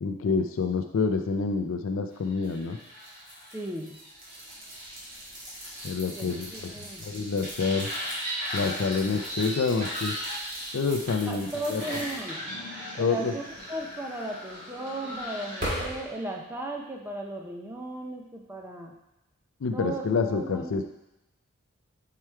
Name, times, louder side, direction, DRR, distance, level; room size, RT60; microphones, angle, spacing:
voice 1, 0.0-2.8 5.8-6.7 7.0-7.9 8.5-10.1 10.7-11.8 13.0-13.3 19.6-20.8, left 4 dB, 65° left, 6 dB, 0.4 m, -27 dB
sound 1, 2.4-16.0, equal, 40° right, 1.9 m, -37 dB
voice 2, 3.5-4.0 6.2-7.0 11.3-12.4 12.9-18.9 19.7-20.7, right 1 dB, 10° right, 1 dB, 0.5 m, -36 dB
4.8 x 4.7 x 4.4 m, 0.93 s
head